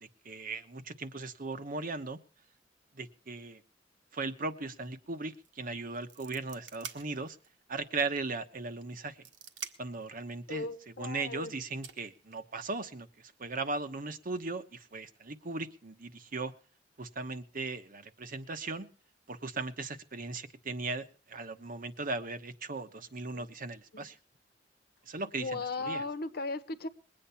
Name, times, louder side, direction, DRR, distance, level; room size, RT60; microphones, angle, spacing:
voice 1, 0.0-2.2 2.9-3.6 4.1-7.4 7.7-9.2 9.8-10.7 11.0-16.5 17.0-18.9 19.3-24.2 25.1-26.0, right 3 dB, 50° right, 10 dB, 1.1 m, -38 dB
sound 1, 5.3-5.5 5.8-7.6 8.0-8.1 8.8-10.0 11.2-11.3 11.8-12.8, right 7 dB, 70° right, 1.4 m, -46 dB
voice 2, 10.5-11.5 23.3-23.5 23.9-24.1 25.4-26.9, left 3 dB, 60° left, 10 dB, 1.1 m, -37 dB
21.5 x 8.7 x 5.7 m, 0.38 s
head